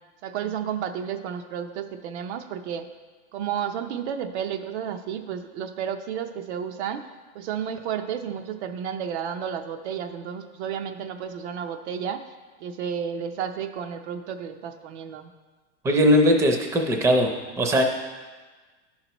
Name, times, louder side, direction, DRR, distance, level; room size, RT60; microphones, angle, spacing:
voice 1, 0.2-2.9 3.3-7.0 7.3-12.2 12.6-15.3, right 8 dB, 80° right, 7 dB, 0.7 m, -32 dB
voice 2, 15.8-17.3 17.6-17.8, equal, 10° right, 3 dB, 0.5 m, -19 dB
10.5 x 5.7 x 3.0 m, 1.4 s
supercardioid pair, 145°, 33 cm